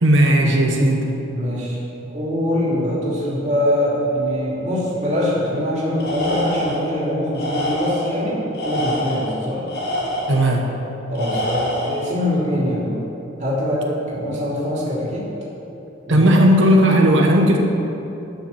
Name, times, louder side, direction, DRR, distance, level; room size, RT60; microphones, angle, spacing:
voice 1, 0.0-1.2 10.3-10.8 16.1-17.6, right 1 dB, 70° right, 1 dB, 1.1 m, -15 dB
voice 2, 1.3-1.8 2.1-9.7 11.1-13.0 13.4-15.3 16.1-16.4, equal, 35° right, -6 dB, 2.7 m, -23 dB
Tools, 6.0-6.9 7.3-8.2 8.5-10.5 11.1-12.1, left 1 dB, 50° left, 1.8 m, -26 dB
11.5 x 5.8 x 7.1 m, 3.0 s
head